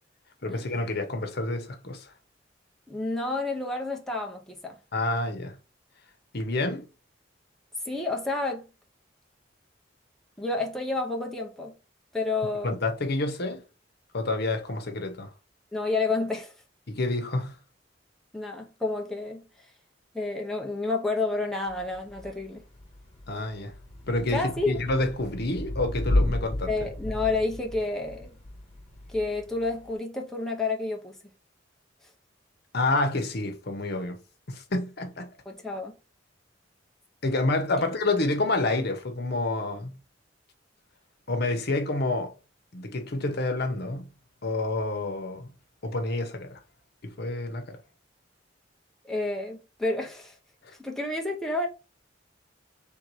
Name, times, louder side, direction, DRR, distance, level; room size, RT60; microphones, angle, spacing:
voice 1, 0.4-2.1 4.9-5.6 6.3-6.9 12.6-13.6 14.1-15.3 16.9-17.5 23.3-23.7 24.1-26.7 32.7-34.2 34.5-35.3 37.2-40.0 41.3-42.3 42.7-44.1 44.4-45.5 45.8-46.6 47.0-47.8, left 2 dB, 60° left, 1.0 m, -28 dB
voice 2, 2.9-4.8 7.9-8.7 10.4-11.7 12.1-12.8 15.7-16.5 18.3-19.5 20.1-22.6 24.3-24.8 26.7-28.4 29.1-31.2 35.5-35.9 37.8-37.9 49.0-50.4 50.8-51.7, left 3 dB, ahead, 0.8 m, -30 dB
Thunder / Rain, 21.7-29.9, left 1 dB, 35° left, 1.4 m, -33 dB
3.6 x 2.8 x 4.7 m
head